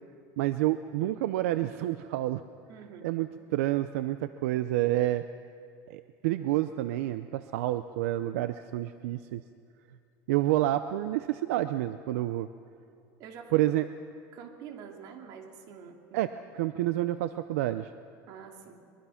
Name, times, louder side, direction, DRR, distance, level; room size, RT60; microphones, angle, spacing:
voice 1, 0.4-2.4 3.0-5.2 5.9-9.4 10.3-12.5 13.5-13.8 16.1-16.3 16.5-17.9, right 15 dB, 90° right, 11 dB, 0.6 m, -29 dB
voice 2, 2.7-3.1 13.2-13.8 14.3-16.2 18.3-18.8, right 7 dB, 60° right, 3 dB, 2.9 m, -46 dB
23.5 x 22.5 x 5.8 m, 2.4 s
supercardioid pair, 135°, 8 cm